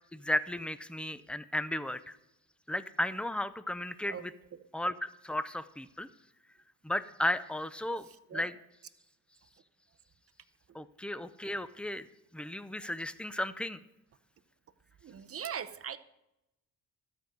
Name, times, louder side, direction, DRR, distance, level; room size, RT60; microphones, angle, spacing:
voice 1, 0.1-2.2 2.7-4.3 4.7-6.1 6.8-8.1 8.3-8.5 10.7-12.1 12.3-13.8, left 1 dB, 5° left, 14 dB, 0.4 m, -34 dB
voice 2, 15.0-16.0, right 8 dB, 35° right, 12 dB, 0.7 m, -39 dB
13.0 x 5.3 x 7.5 m, 0.90 s
cardioid pair, 105°, 38 cm